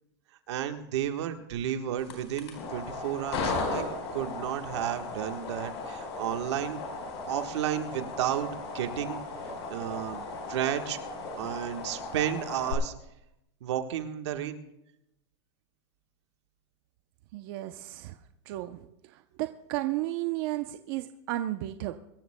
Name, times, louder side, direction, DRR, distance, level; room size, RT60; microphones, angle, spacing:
voice 1, 0.5-3.8 4.1-6.8 7.3-9.2 9.7-11.0 11.4-12.9 13.6-14.6, right 10 dB, 80° right, 7 dB, 1.4 m, -32 dB
sound 1, 2.0-12.7, left 3 dB, 85° left, 4.5 m, -36 dB
voice 2, 17.3-18.1 18.5-18.8 19.4-22.0, right 15 dB, 55° right, 8 dB, 0.7 m, -33 dB
24.0 x 14.0 x 2.2 m, 0.86 s
supercardioid pair, 145°, 14 cm